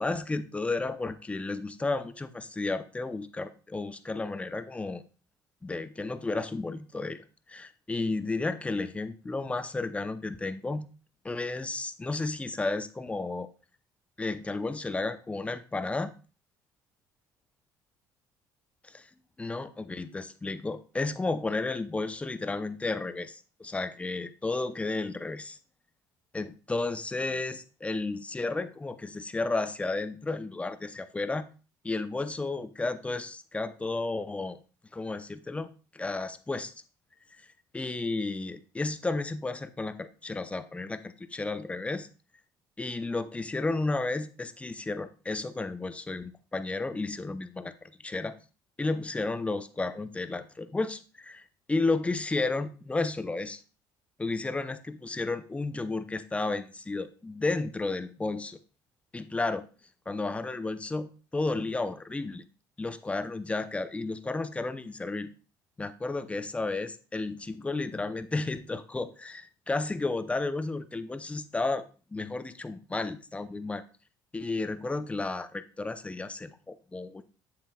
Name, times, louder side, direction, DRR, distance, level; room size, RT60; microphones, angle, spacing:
voice 1, 0.0-5.0 5.6-7.2 7.5-10.9 11.2-13.5 14.2-16.1 18.8-19.1 19.4-25.6 26.3-31.5 31.8-34.6 34.9-36.7 37.4-37.5 37.7-42.1 42.8-47.7 48.0-48.4 48.8-53.6 54.2-58.6 59.1-59.6 60.1-62.4 62.8-65.3 65.8-71.8 72.1-73.8 74.3-77.3, left 3 dB, 15° left, 12 dB, 0.6 m, -32 dB
7.6 x 7.3 x 2.3 m, 0.35 s
cardioid pair, 95°, 9 cm